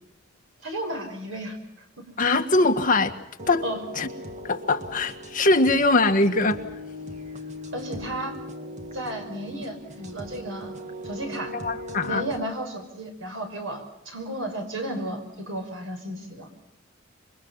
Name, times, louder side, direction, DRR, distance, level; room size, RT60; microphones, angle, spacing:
voice 1, 0.6-1.6 2.0-2.1 3.6-3.8 7.7-8.3 8.9-10.7 11.0-11.5 12.0-16.5, right 1 dB, 75° right, 5 dB, 6.2 m, -33 dB
voice 2, 2.2-3.1 3.5-3.6 4.0-4.1 4.4-6.6 11.5-12.2, left 2 dB, 40° left, 5 dB, 1.8 m, -22 dB
sound 1, 3.4-12.5, left 1 dB, 35° right, 2.1 m, -39 dB
27.5 x 23.5 x 5.8 m, 0.85 s
head